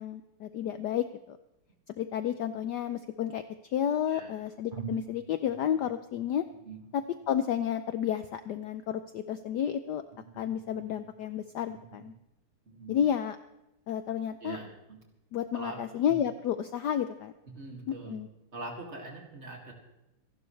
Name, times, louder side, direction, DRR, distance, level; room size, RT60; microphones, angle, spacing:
voice 1, 0.0-1.4 2.0-6.4 6.9-10.0 10.3-12.1 12.9-13.4 13.9-14.6 15.3-17.3 17.9-18.3, left 9 dB, 70° left, 11 dB, 1.0 m, -31 dB
sound 1, 2.4-3.6 4.2-4.3 4.7-12.2, right 6 dB, 85° right, 0.4 m, -49 dB
voice 2, 12.7-13.0 14.4-15.0 15.5-15.8 16.1-16.2 17.5-18.2 18.5-19.7, right 3 dB, 30° right, 1 dB, 2.6 m, -42 dB
26.5 x 11.5 x 3.3 m, 0.94 s
omnidirectional pair, 2.3 m